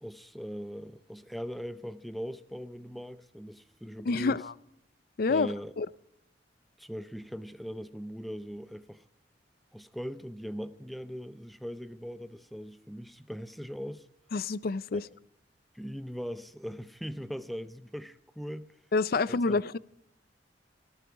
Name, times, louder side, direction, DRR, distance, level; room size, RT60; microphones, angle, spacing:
voice 1, 0.0-4.4 5.3-5.7 6.8-9.0 9.7-14.1 14.9-15.0 15.7-18.7 19.3-19.6, equal, ahead, 0.6 m, -40 dB
voice 2, 4.0-4.5 5.2-5.9 14.3-15.0 18.9-19.8, left 4 dB, 55° left, 0.5 m, -28 dB
19.0 x 14.0 x 4.8 m
head